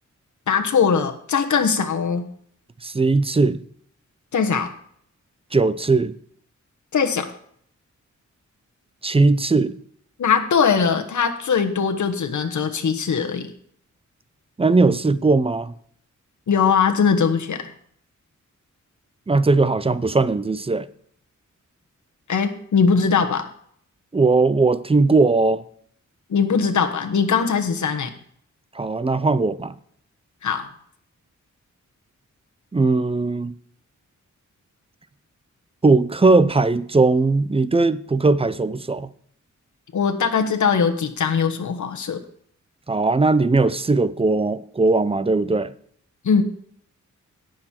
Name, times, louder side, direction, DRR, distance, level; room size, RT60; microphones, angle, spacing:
voice 1, 0.5-2.2 4.3-4.7 6.9-7.3 10.2-13.5 16.5-17.6 22.3-23.5 26.3-28.1 30.4-30.7 39.9-42.2 46.2-46.4, left 6 dB, 70° left, 1.3 m, -20 dB
voice 2, 2.8-3.6 5.5-6.1 9.0-9.7 14.6-15.7 19.3-20.9 24.1-25.6 28.8-29.7 32.7-33.5 35.8-39.1 42.9-45.7, right 3 dB, 20° right, 0.5 m, -19 dB
17.5 x 6.4 x 4.4 m
wide cardioid pair, 150°, 30 cm